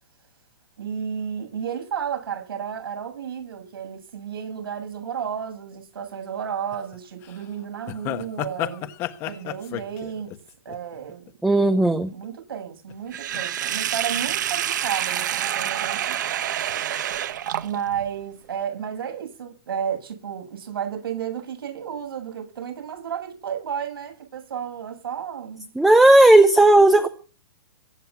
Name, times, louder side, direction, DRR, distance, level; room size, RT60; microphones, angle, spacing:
voice 1, 0.8-8.9 9.3-10.4 10.6-16.2 17.6-25.7, right 8 dB, 80° right, 8.0 m, -32 dB
sound 1, 6.7-7.0 7.2-7.4 7.9-11.5 11.8-12.2 12.9-13.4 13.7-13.8, left 14 dB, 20° left, 1.3 m, -32 dB
voice 2, 11.4-12.1 25.8-27.1, right 2 dB, ahead, 0.7 m, -14 dB
Sink (filling or washing), 13.1-18.0, right 11 dB, 55° right, 1.7 m, -27 dB
23.0 x 10.0 x 6.0 m
hypercardioid pair, 170°, 12 cm